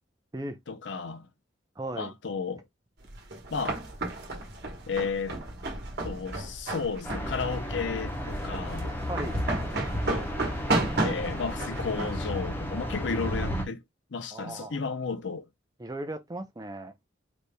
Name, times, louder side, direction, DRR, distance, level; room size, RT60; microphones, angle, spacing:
voice 1, 0.7-1.3 2.0-2.6 3.5-3.8 4.9-5.4 6.0-8.9 11.0-13.8 14.1-15.5, left 5 dB, 65° left, 0.6 m, -33 dB
voice 2, 1.8-2.1 9.1-9.4 14.3-14.8 15.8-16.9, right 1 dB, 20° right, 0.6 m, -37 dB
sound 1, 3.1-13.5, right 2 dB, 55° right, 1.2 m, -33 dB
sound 2, 7.0-13.6, left 1 dB, 10° left, 0.9 m, -34 dB
4.1 x 3.3 x 2.2 m
head